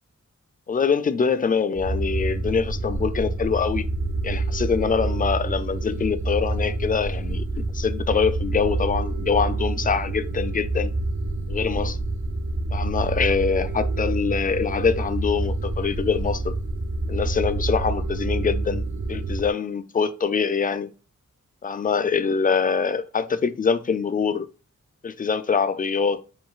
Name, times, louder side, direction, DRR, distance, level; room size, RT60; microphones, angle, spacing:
voice 1, 0.7-3.9 4.2-10.9 11.5-12.0 12.7-16.6 17.1-20.9 21.6-24.5 25.0-26.2, left 6 dB, 30° left, 0.3 m, -24 dB
sound 1, 1.7-19.5, right 2 dB, 75° right, 0.8 m, -27 dB
7.6 x 2.6 x 2.3 m
wide cardioid pair, 125°, 29 cm